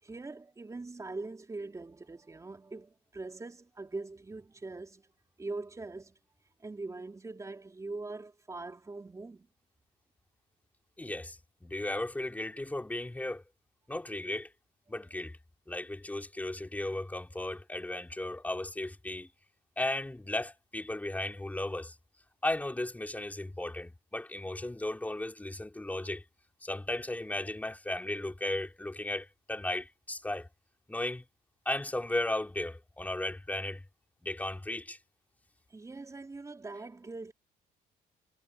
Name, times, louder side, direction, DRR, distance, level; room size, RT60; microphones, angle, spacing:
voice 1, 0.0-5.1 5.4-6.1 6.6-9.5 35.7-37.3, right 3 dB, 20° right, 3.9 m, -42 dB
voice 2, 11.0-13.4 13.9-14.5 14.9-15.4 15.7-19.3 19.8-21.9 22.4-26.2 26.6-30.5 30.9-31.2 31.7-33.8 34.2-35.0, left 1 dB, 10° left, 3.7 m, -35 dB
cardioid pair, 110°, 17 cm